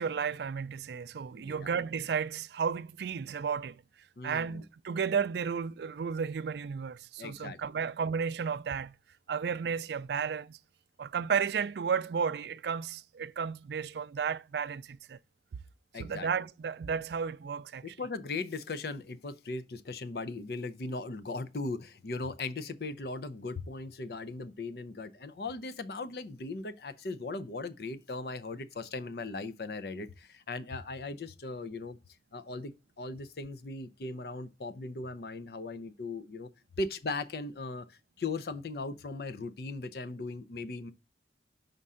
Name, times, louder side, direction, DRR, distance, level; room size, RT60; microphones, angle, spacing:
voice 1, 0.0-3.8 4.2-9.0 9.3-10.6 11.0-15.2 16.0-17.9, right 6 dB, 65° right, 0.3 m, -33 dB
voice 2, 1.3-1.7 4.2-4.6 7.2-7.6 15.9-16.3 17.8-32.0 32.3-36.5 36.8-40.9, left 3 dB, 60° left, 0.5 m, -38 dB
5.3 x 3.6 x 5.5 m
head